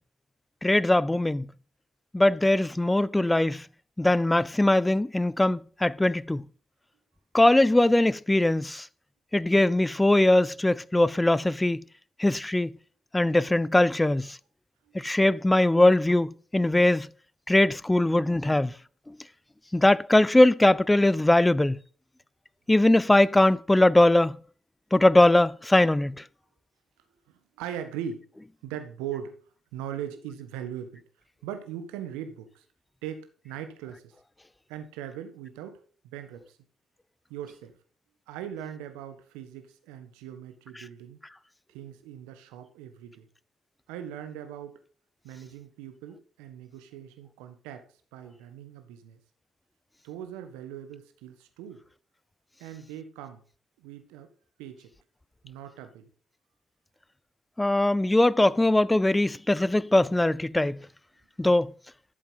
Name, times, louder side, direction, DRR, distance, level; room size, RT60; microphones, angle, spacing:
voice 1, 0.6-1.5 2.1-3.6 4.0-6.5 7.3-8.8 9.3-11.8 12.2-12.7 13.1-14.4 14.9-17.1 17.5-18.7 19.7-21.8 22.7-24.4 24.9-26.2 57.6-60.8 61.4-61.7, left 1 dB, 15° left, 0.6 m, -21 dB
voice 2, 27.3-28.2 28.6-29.4 29.7-31.0 31.4-32.6 33.0-34.1 34.7-35.8 36.0-36.6 37.3-37.7 38.3-41.2 41.7-43.3 43.9-44.7 45.2-47.9 48.1-49.2 50.0-51.8 52.6-53.4 53.8-54.3 54.6-54.9 55.4-56.1, right 9 dB, 75° right, 1.5 m, -40 dB
12.5 x 7.3 x 5.7 m
hypercardioid pair, 45°, 0 cm